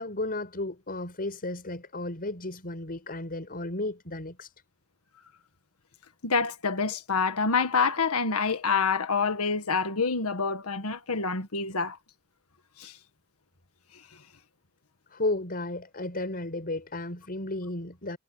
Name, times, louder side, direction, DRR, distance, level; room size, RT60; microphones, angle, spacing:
voice 1, 0.0-4.5 15.1-18.2, left 2 dB, 40° left, 5.9 m, -33 dB
voice 2, 6.2-12.0 12.8-12.9, left 5 dB, 75° left, 1.8 m, -27 dB
head